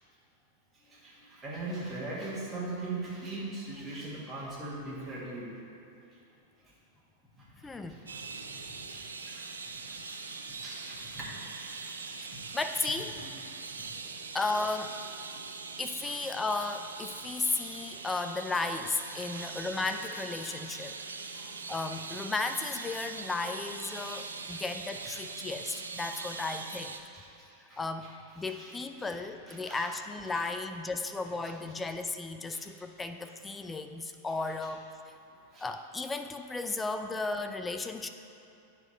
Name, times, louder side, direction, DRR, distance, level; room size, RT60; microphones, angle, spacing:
voice 1, 0.7-5.5 7.6-8.2 8.5-9.5 9.7-12.5 13.2-13.3 13.8-14.2 16.0-16.1 17.6-17.7 19.1-19.5 21.4-21.7 23.4-23.6 23.9-24.6 25.0-25.3 27.1-28.1 28.4-29.1 29.5-29.9 30.3-30.4 31.4-31.5 31.8-31.9 32.5-32.7 34.6-34.7 35.5-35.7 36.6-36.8, right 2 dB, 15° right, -8 dB, 1.7 m, -42 dB
voice 2, 7.6-8.0 12.1-13.2 14.3-14.9 15.8-21.0 21.7-26.9 27.8-34.8 35.6-38.1, left 3 dB, 15° left, 7 dB, 0.3 m, -34 dB
sound 1, 8.1-27.0, right 4 dB, 75° right, 0.4 m, -42 dB
10.0 x 3.6 x 4.3 m, 2.7 s
figure-of-eight pair, 90°, 0 cm